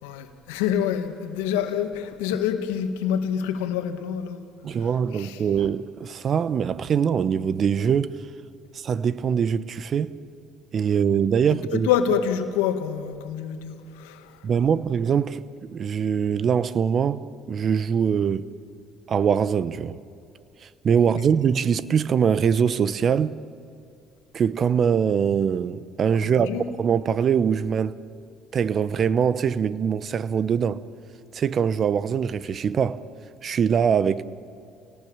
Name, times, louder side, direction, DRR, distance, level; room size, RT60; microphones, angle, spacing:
voice 1, 0.0-4.4 4.8-5.4 11.7-14.4 26.2-26.7, left 8 dB, 85° left, 1.7 m, -27 dB
voice 2, 4.6-8.1 8.7-10.2 10.7-11.9 14.4-18.5 19.1-20.0 20.8-23.4 24.3-26.5 26.8-28.0 28.5-30.8 31.3-33.0 33.4-34.2, right 7 dB, 50° right, 1.0 m, -23 dB
29.0 x 18.5 x 8.9 m
hypercardioid pair, 65°, 0 cm